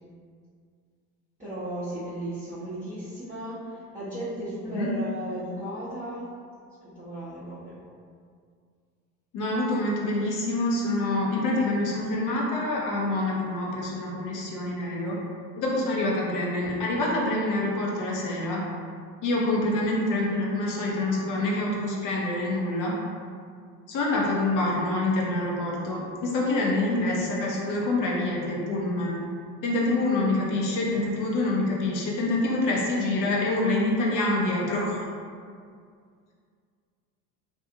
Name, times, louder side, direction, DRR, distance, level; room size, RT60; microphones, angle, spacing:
voice 1, 1.4-6.3 6.9-7.8 15.7-15.9 29.8-30.1, right 1 dB, 15° right, -12 dB, 0.9 m, -36 dB
voice 2, 4.7-5.0 9.3-15.2 15.6-18.6 19.2-22.9 23.9-29.2 29.6-35.0, left 2 dB, 40° left, -3 dB, 0.8 m, -26 dB
2.7 x 2.3 x 2.6 m, 2.2 s
hypercardioid pair, 70°, 46 cm